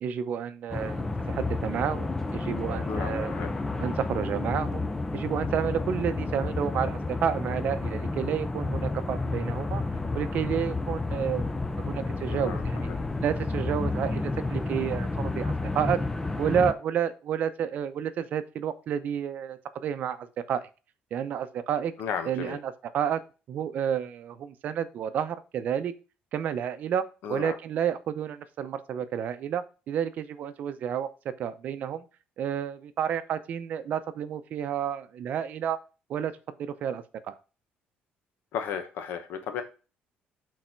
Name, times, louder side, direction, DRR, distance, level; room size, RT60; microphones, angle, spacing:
voice 1, 0.0-3.4 3.8-4.9 5.1-9.8 10.1-12.9 13.2-16.0 16.4-20.7 21.1-21.9 22.3-23.2 23.5-25.9 26.3-27.0 27.3-32.0 32.4-35.8 36.1-36.3 36.6-37.3, right 8 dB, 50° right, 11 dB, 0.6 m, -30 dB
sound 1, 0.7-16.7, left 3 dB, 10° left, 0.5 m, -31 dB
voice 2, 2.8-3.5 12.3-12.6 12.9-13.0 22.0-22.6 27.2-27.6 38.5-39.6, left 7 dB, 65° left, 8 dB, 0.9 m, -34 dB
6.6 x 4.2 x 4.5 m, 0.33 s
cardioid pair, 165°, 4 cm